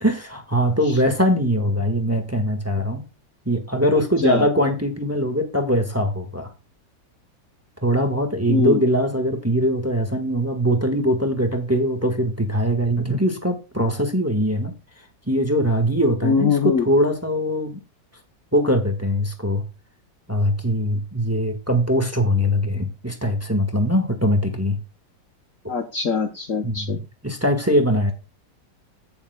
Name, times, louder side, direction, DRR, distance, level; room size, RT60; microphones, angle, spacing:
voice 1, 0.0-3.0 3.4-6.5 7.8-14.7 15.3-17.8 18.5-19.6 20.3-24.8 26.6-27.0 27.2-28.1, equal, 10° right, 1.5 m, -21 dB
voice 2, 8.5-8.8 16.2-16.9 25.7-27.0, left 6 dB, 50° left, 1.3 m, -22 dB
16.5 x 7.1 x 2.3 m
omnidirectional pair, 1.9 m